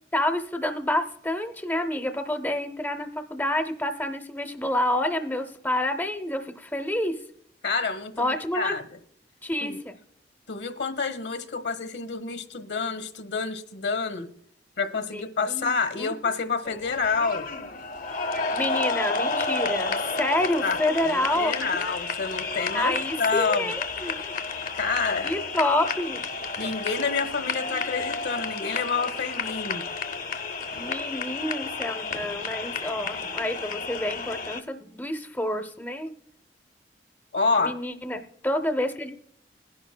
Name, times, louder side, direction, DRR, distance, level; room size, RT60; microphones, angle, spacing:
voice 1, 0.1-7.2 8.2-8.7 9.4-10.0 15.1-16.1 18.5-22.0 22.7-24.4 25.2-26.2 30.7-36.1 37.6-39.1, left 1 dB, 10° left, 7 dB, 0.6 m, -28 dB
voice 2, 7.6-8.8 9.6-9.8 10.5-14.3 14.8-17.5 20.6-20.8 21.0-23.7 24.7-25.3 26.6-29.8 37.3-37.8, left 4 dB, 75° left, 10 dB, 1.0 m, -28 dB
sound 1, 16.6-34.6, left 4 dB, 50° left, 0.6 m, -31 dB
20.5 x 11.0 x 2.2 m, 0.67 s
head